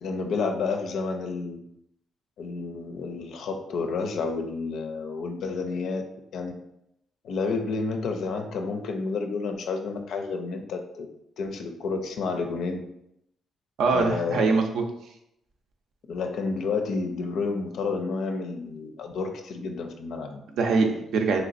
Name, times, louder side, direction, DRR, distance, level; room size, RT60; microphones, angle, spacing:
voice 1, 0.0-1.6 2.4-6.1 6.3-6.5 7.2-11.1 11.4-12.8 13.9-14.5 16.1-20.4, left 4 dB, 70° left, 5 dB, 0.4 m, -30 dB
voice 2, 13.8-14.8 20.6-21.4, right 4 dB, 75° right, 3 dB, 0.5 m, -23 dB
3.2 x 2.9 x 2.5 m, 0.80 s
cardioid pair, 90°, 0 cm